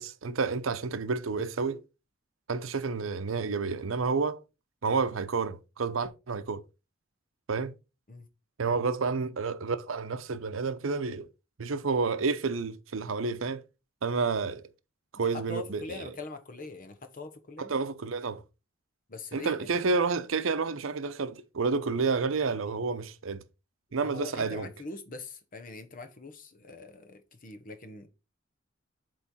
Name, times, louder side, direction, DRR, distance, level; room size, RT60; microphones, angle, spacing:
voice 1, 0.0-1.8 2.5-4.4 4.8-6.6 7.5-7.7 8.6-11.3 11.6-13.6 14.0-14.7 15.1-16.1 17.6-18.4 19.3-23.4 23.9-24.7, right 4 dB, 85° right, 0.7 m, -30 dB
voice 2, 15.1-17.7 19.1-19.8 24.0-28.1, left 3 dB, 45° left, 1.0 m, -43 dB
8.2 x 3.2 x 4.2 m
head